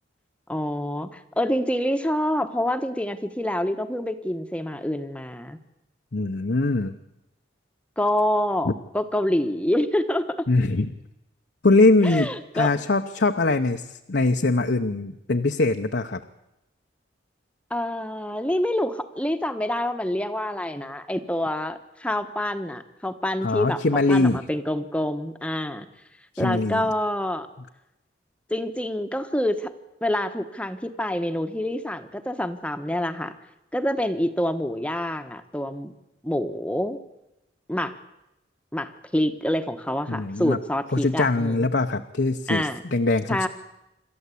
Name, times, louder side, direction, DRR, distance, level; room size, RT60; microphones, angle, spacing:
voice 1, 0.5-5.6 8.0-10.4 12.0-12.7 17.7-23.8 24.1-25.9 26.4-27.5 28.5-29.7 30.0-33.3 33.7-35.9 36.2-37.0 37.7-37.9 38.7-41.7 42.5-42.8 43.3-43.5, left 1 dB, 5° left, 8 dB, 1.1 m, -27 dB
voice 2, 6.1-6.9 8.6-8.7 10.5-10.9 11.6-16.2 23.4-24.4 26.3-26.9 40.1-40.6 40.9-43.5, left 2 dB, 60° left, 5 dB, 0.8 m, -22 dB
27.5 x 13.0 x 8.4 m, 0.92 s
head